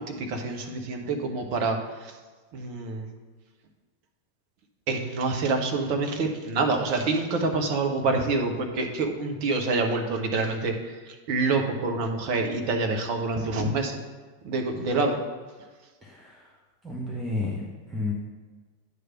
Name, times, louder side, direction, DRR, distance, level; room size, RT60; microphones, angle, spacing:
voice 1, 0.0-2.1 2.5-3.1 4.9-10.9 11.3-14.0 14.4-15.2, right 3 dB, 45° right, 3 dB, 1.0 m, -27 dB
voice 2, 16.0-16.5 16.8-18.1, left 2 dB, 15° right, -3 dB, 1.0 m, -32 dB
9.3 x 3.3 x 5.8 m, 1.4 s
figure-of-eight pair, 90°, 0 cm